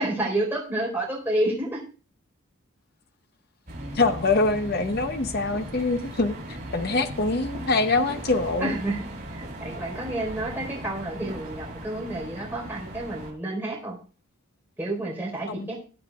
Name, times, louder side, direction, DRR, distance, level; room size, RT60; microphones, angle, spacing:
voice 1, 0.0-1.8 8.6-9.0 9.3-14.0 14.8-15.7, right 1 dB, 10° right, -3 dB, 4.1 m, -29 dB
sound 1, 3.7-13.3, right 1 dB, 35° right, 6.0 m, -38 dB
Bass guitar, 3.7-10.0, equal, 55° right, 6.2 m, -46 dB
voice 2, 3.9-8.7 15.5-15.7, left 3 dB, 45° left, 8 dB, 0.7 m, -24 dB
21.0 x 8.8 x 2.3 m, 0.36 s
head